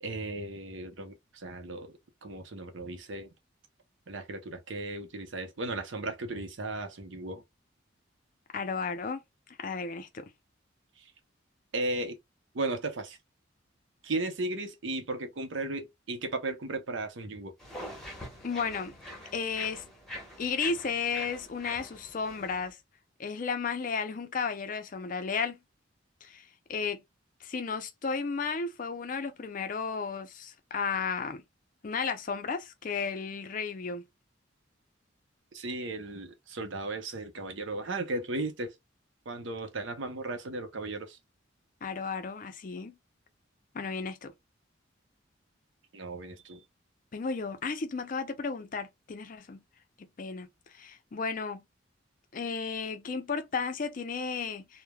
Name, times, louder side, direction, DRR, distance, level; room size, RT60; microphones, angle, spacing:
voice 1, 0.0-1.9 2.2-3.3 4.1-7.4 11.0-11.1 11.7-12.2 12.5-13.2 14.0-17.5 35.5-38.7 39.3-41.2 45.9-46.6, right 2 dB, 75° right, 0.7 m, -35 dB
voice 2, 8.5-9.2 9.6-10.3 18.4-19.0 19.3-19.8 20.4-22.8 23.2-25.6 26.2-27.0 27.4-31.4 31.8-34.1 41.8-42.9 43.7-44.3 47.1-49.6 50.0-51.6 52.3-54.8, left 5 dB, 45° left, 0.4 m, -34 dB
sound 1, 17.6-22.7, left 1 dB, ahead, 0.9 m, -44 dB
3.2 x 2.0 x 2.2 m
head